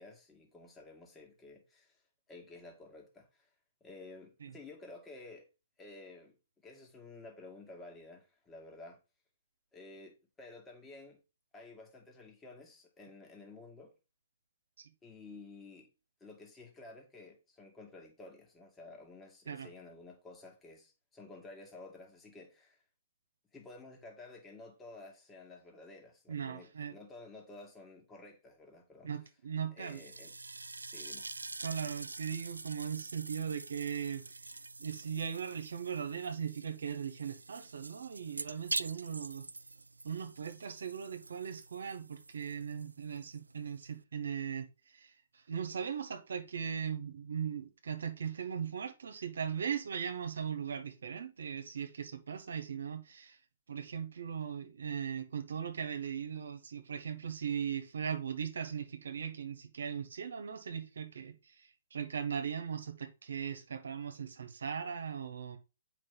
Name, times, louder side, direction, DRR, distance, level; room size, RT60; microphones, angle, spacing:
voice 1, 0.0-2.0 2.3-3.5 3.8-5.5 5.8-6.4 6.6-9.0 9.7-11.2 11.5-13.9 15.0-15.9 16.2-22.8 23.5-29.1 29.7-30.3 30.9-31.3, left 2 dB, 15° left, 1.9 m, -52 dB
voice 2, 26.3-26.9 29.0-30.0 31.6-34.2 34.8-39.5 40.0-53.4 53.7-65.6, right 7 dB, 70° right, 1.1 m, -39 dB
sound 1, 29.8-44.0, right 3 dB, 90° right, 0.3 m, -45 dB
7.9 x 5.0 x 3.9 m
figure-of-eight pair, 130°, 0 cm